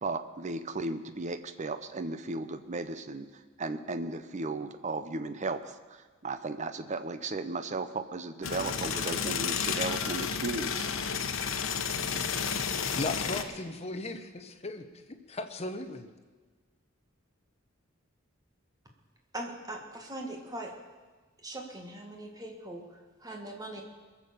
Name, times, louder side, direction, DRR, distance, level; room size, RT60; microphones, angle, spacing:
voice 1, 0.0-3.3 3.6-10.9, right 3 dB, 35° right, 10 dB, 0.7 m, -35 dB
sound 1, 8.4-13.4, left 6 dB, 80° left, 1.0 m, -31 dB
voice 2, 12.9-16.1, left 2 dB, 30° left, 7 dB, 0.9 m, -37 dB
voice 3, 19.3-20.7 21.4-23.8, right 1 dB, 20° right, 2 dB, 1.7 m, -41 dB
21.5 x 7.4 x 6.8 m, 1.4 s
head